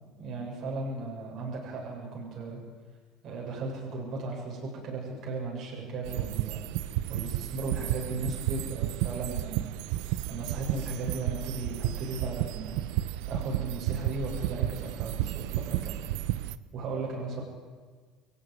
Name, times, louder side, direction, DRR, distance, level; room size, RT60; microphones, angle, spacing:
voice 1, 0.2-2.6 3.2-6.6 7.1-9.6 10.3-12.8 13.3-16.0 16.7-17.4, right 3 dB, 40° right, -3 dB, 7.4 m, -36 dB
sound 1, 6.0-16.6, right 14 dB, 70° right, 0.8 m, -32 dB
25.0 x 15.0 x 9.8 m, 1.5 s
cardioid pair, 150°, 0 cm